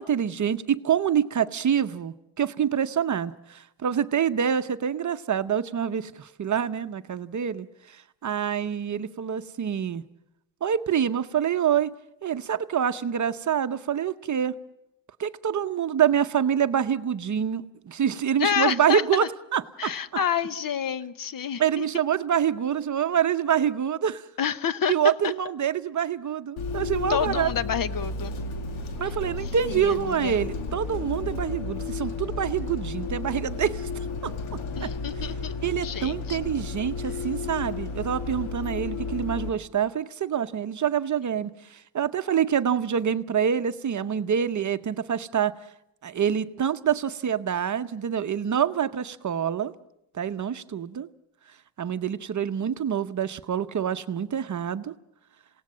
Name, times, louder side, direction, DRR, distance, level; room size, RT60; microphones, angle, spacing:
voice 1, 0.0-10.0 10.6-11.9 12.2-14.5 15.2-19.3 19.5-19.9 21.6-24.2 24.9-27.5 29.0-33.9 34.2-34.9 35.6-45.5 46.0-49.7 50.1-51.1 51.8-54.9, right 8 dB, 40° right, 11 dB, 0.8 m, -26 dB
voice 2, 18.4-19.0 19.8-21.8 24.4-24.9 25.2-25.3 27.1-28.3 29.6-30.4 34.8-36.4, left 8 dB, 45° left, 15 dB, 0.9 m, -28 dB
Bus, 26.6-39.5, left 4 dB, 85° left, 2.3 m, -33 dB
28.0 x 17.5 x 7.4 m, 0.85 s
cardioid pair, 110°, 47 cm